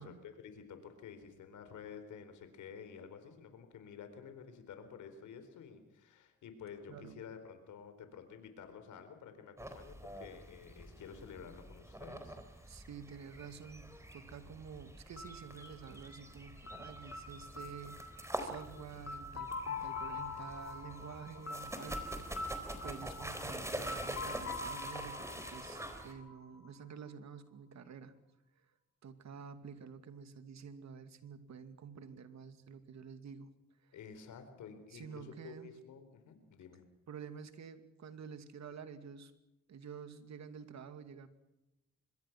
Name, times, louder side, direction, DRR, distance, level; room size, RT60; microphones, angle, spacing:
voice 1, 0.0-12.9 33.9-36.8, left 6 dB, 85° left, 8 dB, 4.3 m, -51 dB
voice 2, 6.9-7.3 12.7-28.1 29.0-33.5 33.8-34.0 34.9-35.7 37.1-39.3 39.7-41.3, right 6 dB, 65° right, 9 dB, 2.5 m, -50 dB
sound 1, 9.6-26.1, right 1 dB, 10° right, 4.2 m, -46 dB
sound 2, 15.2-26.9, left 3 dB, 50° left, 3.6 m, -44 dB
25.5 x 22.5 x 6.1 m, 0.92 s
cardioid pair, 85°, 29 cm